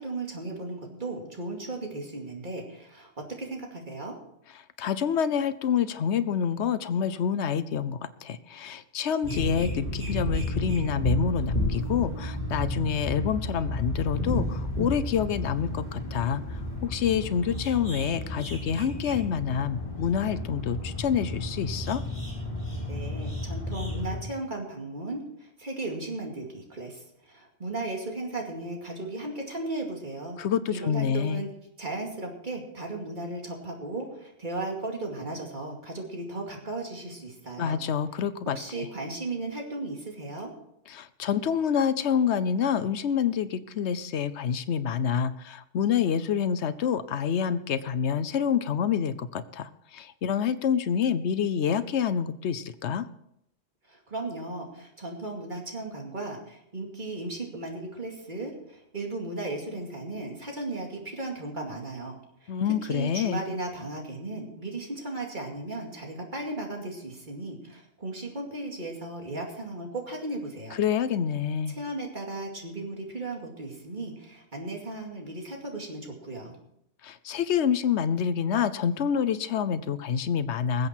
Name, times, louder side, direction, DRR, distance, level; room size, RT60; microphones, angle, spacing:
voice 1, 0.0-4.1 22.9-30.4 30.7-31.5 31.8-37.8 38.6-40.5 53.9-62.5 62.9-70.8 71.7-76.5, right 2 dB, 45° right, 0 dB, 2.5 m, -36 dB
voice 2, 4.8-22.0 30.4-31.5 37.6-38.9 40.9-53.1 62.5-63.4 70.7-71.8 77.0-80.9, left 7 dB, 80° left, 14 dB, 1.0 m, -27 dB
sound 1, 9.2-24.2, left 1 dB, 40° left, 5.3 m, -32 dB
20.5 x 8.0 x 4.5 m, 0.77 s
omnidirectional pair, 1.2 m